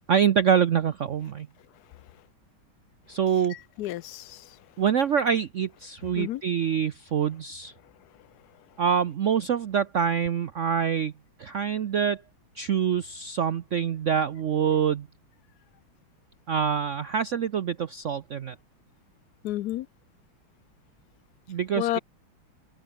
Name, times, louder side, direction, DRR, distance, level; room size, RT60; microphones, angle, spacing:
voice 1, 0.1-1.5 3.1-3.5 4.8-7.7 8.8-11.1 11.4-12.2 12.6-15.1 16.5-18.5 21.5-22.0, right 8 dB, 80° right, 0.6 m, -25 dB
voice 2, 3.5-4.6 6.1-6.4 19.4-19.9 21.7-22.0, left 14 dB, 75° left, 0.9 m, -31 dB
omnidirectional pair, 2.3 m